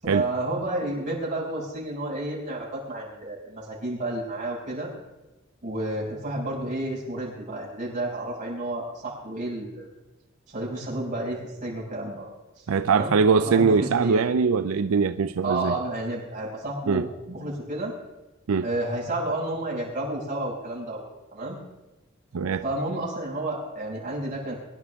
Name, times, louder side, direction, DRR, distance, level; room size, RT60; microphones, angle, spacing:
voice 1, 0.0-4.9 5.6-9.9 10.5-12.3 12.6-14.2 15.4-17.9 18.6-21.0 21.3-21.6 22.6-24.5, right 1 dB, 35° right, -5 dB, 6.0 m, -31 dB
voice 2, 12.7-15.7 16.9-17.0 18.5-18.6 22.3-22.6, right 5 dB, 85° right, 10 dB, 0.5 m, -22 dB
23.0 x 11.0 x 3.5 m, 1.0 s
head